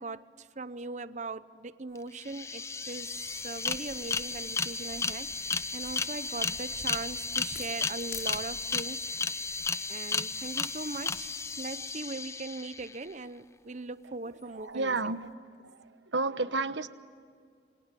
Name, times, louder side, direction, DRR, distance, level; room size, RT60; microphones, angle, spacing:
voice 1, 0.0-3.2 3.4-9.4 9.9-15.0, right 3 dB, 40° right, 0.8 m, -40 dB
sound 1, 2.0-2.1 2.2-13.0, left 4 dB, 15° left, 0.6 m, -34 dB
sound 2, 2.7-8.8, left 6 dB, 90° left, 5.0 m, -50 dB
voice 2, 14.4-15.3 15.6-16.9, right 3 dB, 85° right, 1.1 m, -32 dB
28.0 x 25.5 x 8.3 m
head